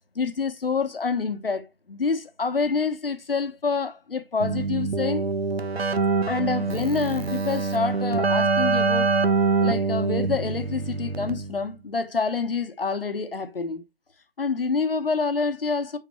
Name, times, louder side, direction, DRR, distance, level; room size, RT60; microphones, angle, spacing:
voice 1, 0.1-5.2 6.3-9.1 9.6-13.8 14.4-16.0, left 4 dB, 65° left, 1.3 m, -27 dB
Keyboard (musical), 4.4-11.7, right 4 dB, 85° right, 1.0 m, -25 dB
6.0 x 5.9 x 3.1 m
figure-of-eight pair, 160°, 31 cm